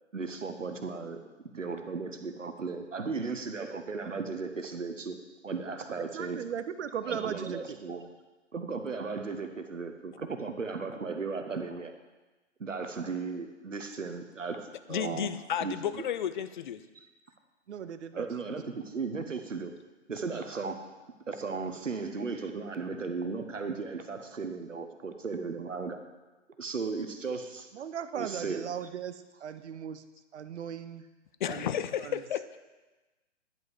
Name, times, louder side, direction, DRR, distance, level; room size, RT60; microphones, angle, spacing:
voice 1, 0.1-1.2 1.5-5.2 5.4-6.4 7.0-8.1 8.5-11.9 12.6-15.3 15.6-16.0 16.9-17.0 18.1-19.7 20.1-20.8 21.3-26.0 26.6-27.7 28.1-28.7, right 4 dB, 85° right, 7 dB, 1.0 m, -36 dB
voice 2, 6.0-7.8 17.7-18.7 27.7-30.0 30.3-31.0 31.4-31.7 32.0-32.2, right 8 dB, 65° right, 12 dB, 0.7 m, -38 dB
voice 3, 14.9-16.8 31.4-32.6, left 9 dB, 40° left, 12 dB, 0.5 m, -32 dB
10.5 x 5.4 x 4.8 m, 1.2 s
figure-of-eight pair, 125°, 37 cm